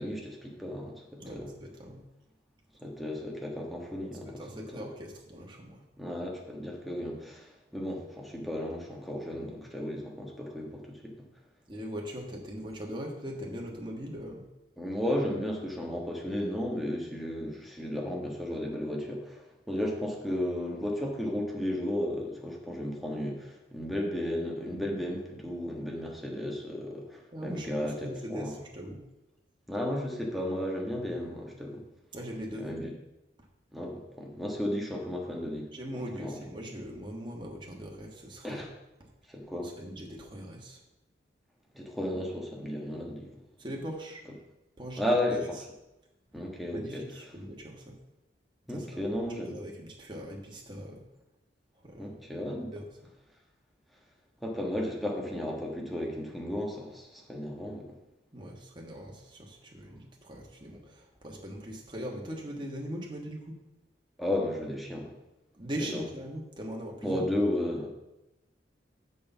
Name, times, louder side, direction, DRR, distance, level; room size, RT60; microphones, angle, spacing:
voice 1, 0.0-1.5 2.8-4.9 6.0-11.1 14.8-28.6 29.7-31.8 32.6-32.9 33.7-35.7 35.9-36.4 38.4-38.7 39.3-39.7 41.7-43.3 45.0-45.5 46.3-47.0 48.7-49.6 52.0-52.7 54.4-57.9 64.2-65.1 65.9-66.0 67.0-67.9, left 1 dB, ahead, -1 dB, 1.3 m, -34 dB
voice 2, 1.2-2.0 4.4-5.8 11.7-14.4 27.3-29.0 32.1-32.7 35.7-38.6 39.6-40.8 43.6-44.2 44.8-45.0 46.7-47.9 48.7-49.2 49.5-51.0 51.8-52.2 52.7-52.8 58.3-63.6 65.5-67.2, equal, 25° right, -1 dB, 1.5 m, -40 dB
6.6 x 5.3 x 7.2 m, 0.95 s
head